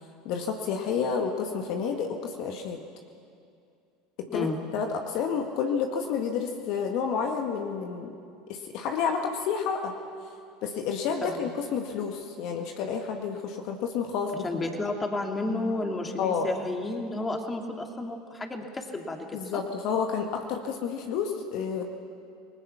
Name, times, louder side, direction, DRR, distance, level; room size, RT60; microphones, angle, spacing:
voice 1, 0.3-2.8 4.2-8.2 8.5-9.9 10.6-14.4 16.2-16.5 19.3-21.8, left 6 dB, 60° left, 4 dB, 1.9 m, -30 dB
voice 2, 4.3-4.6 11.2-11.4 14.4-19.6, left 2 dB, 20° left, 3 dB, 2.9 m, -32 dB
28.5 x 20.0 x 6.0 m, 2.5 s
hypercardioid pair, 80°, 0 cm